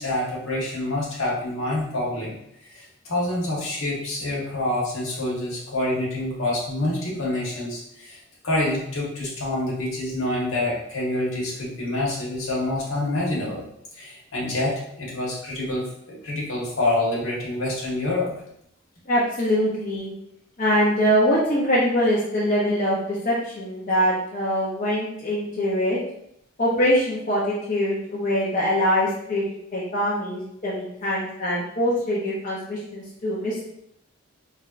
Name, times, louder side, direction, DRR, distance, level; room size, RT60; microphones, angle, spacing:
voice 1, 0.0-13.6 13.9-18.3, left 1 dB, 70° left, -4 dB, 1.4 m, -27 dB
voice 2, 19.1-20.1 20.6-26.0 26.6-29.4 29.7-33.7, equal, 40° left, -6 dB, 0.7 m, -23 dB
4.3 x 3.5 x 2.5 m, 0.75 s
head